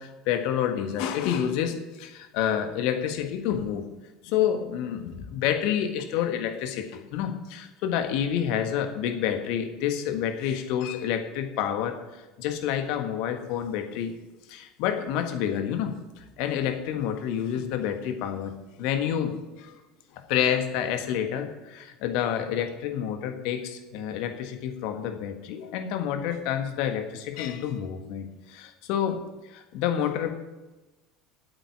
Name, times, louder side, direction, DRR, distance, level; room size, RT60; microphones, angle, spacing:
voice 1, 0.0-3.9 4.2-14.1 14.5-19.8 20.1-30.3, left 9 dB, 60° left, 6 dB, 1.5 m, -29 dB
8.8 x 8.3 x 8.7 m, 1.1 s
figure-of-eight pair, 70°, 0 cm